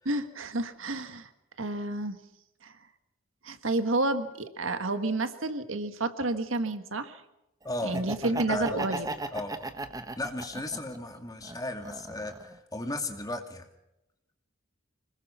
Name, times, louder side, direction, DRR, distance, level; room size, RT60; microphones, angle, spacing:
voice 1, 0.0-1.3 1.6-2.2 2.6-2.7 3.4-7.2 7.8-9.1, right 2 dB, 75° right, 9 dB, 1.6 m, -30 dB
voice 2, 7.6-9.0 9.3-9.7 10.2-13.7, left 2 dB, 20° left, 5 dB, 2.3 m, -35 dB
Laughter, 7.8-11.0 11.4-12.5, right 2 dB, 20° right, 1.2 m, -36 dB
26.0 x 21.0 x 5.7 m, 0.88 s
head